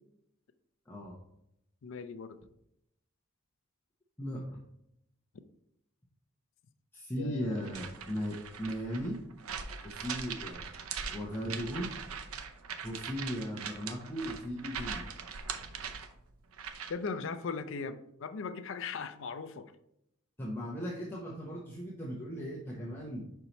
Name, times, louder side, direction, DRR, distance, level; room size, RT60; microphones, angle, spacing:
voice 1, 1.8-2.4 7.2-7.7 16.9-19.7, left 5 dB, 65° left, 10 dB, 0.5 m, -38 dB
voice 2, 4.2-4.6 6.9-9.2 9.8-10.7 11.1-11.9 12.8-15.1 20.4-23.3, equal, 10° left, -4 dB, 0.8 m, -37 dB
sound 1, 7.6-17.1, right 6 dB, 85° right, 0.6 m, -41 dB
5.6 x 4.5 x 4.0 m, 0.78 s
head